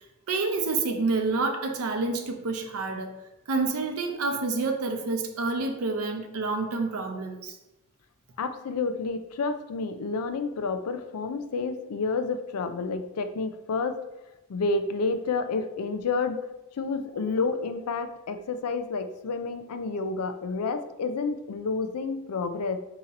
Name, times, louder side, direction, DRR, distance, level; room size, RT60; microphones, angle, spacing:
voice 1, 0.3-3.1 3.5-7.6, right 3 dB, 70° right, 5 dB, 0.6 m, -28 dB
voice 2, 8.4-14.0 14.5-16.4 16.8-22.8, left 4 dB, 80° left, 9 dB, 0.4 m, -29 dB
3.8 x 2.9 x 4.0 m, 0.95 s
head